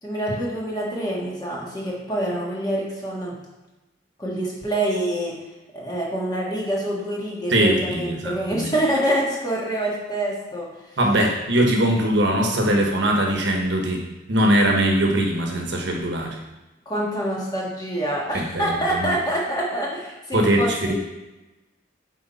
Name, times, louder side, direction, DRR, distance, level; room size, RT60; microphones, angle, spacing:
voice 1, 0.0-3.4 4.2-5.3 5.7-10.7 16.8-20.9, right 1 dB, 20° left, -4 dB, 1.6 m, -26 dB
voice 2, 7.5-8.7 11.0-14.0 14.3-16.4 18.3-19.1 20.3-20.9, right 1 dB, 65° right, 1 dB, 1.1 m, -21 dB
8.3 x 4.6 x 4.1 m, 1.1 s
head